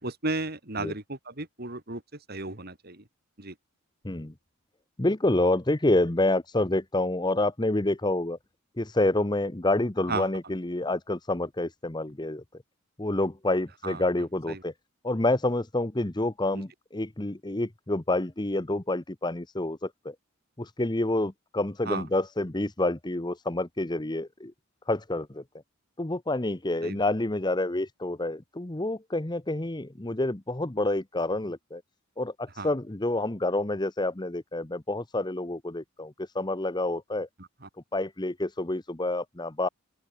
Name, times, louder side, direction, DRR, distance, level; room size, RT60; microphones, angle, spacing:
voice 1, 0.0-3.0 3.4-3.5 10.1-10.3 13.8-14.0 14.5-14.6 16.5-16.6 21.8-22.0 26.8-27.0 32.6-32.7 37.4-37.7, right 3 dB, 50° right, 3.5 m, -34 dB
voice 2, 5.0-8.4 8.8-12.4 13.0-14.7 15.0-20.1 20.6-24.5 24.9-25.4 26.0-31.8 32.2-37.3 37.9-39.7, left 2 dB, 20° left, 1.0 m, -28 dB
open air
head